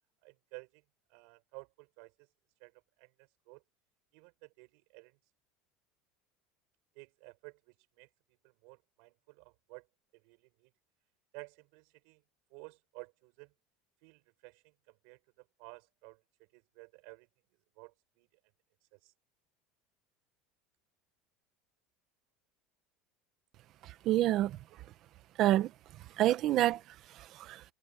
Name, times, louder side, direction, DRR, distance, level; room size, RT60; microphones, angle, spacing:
voice 1, 0.2-0.8 1.1-2.3 2.6-3.6 4.1-5.3 7.0-8.1 8.4-9.9 10.1-10.7 11.3-12.2 12.5-13.5 14.0-16.2 16.5-17.3 17.8-18.3 18.8-19.1, right 33 dB, 65° right, 5.9 m, -54 dB
voice 2, 23.8-24.6 25.4-25.7 26.2-26.8 27.2-27.6, right 14 dB, 40° right, 1.0 m, -28 dB
cardioid pair, 160°, 0 cm